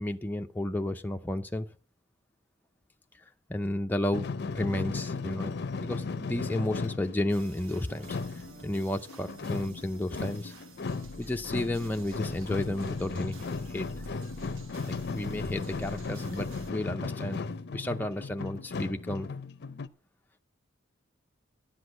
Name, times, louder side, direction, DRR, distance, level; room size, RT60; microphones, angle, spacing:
voice 1, 0.0-1.7 3.5-8.2 8.6-10.5 11.2-13.4 13.7-13.9 14.9-17.5 17.7-19.3, left 1 dB, 10° left, 0.5 m, -32 dB
sound 1, 4.1-19.9, left 4 dB, 55° left, 0.5 m, -36 dB
sound 2, 7.3-16.7, right 1 dB, 80° right, 1.2 m, -48 dB
10.5 x 8.0 x 8.0 m
head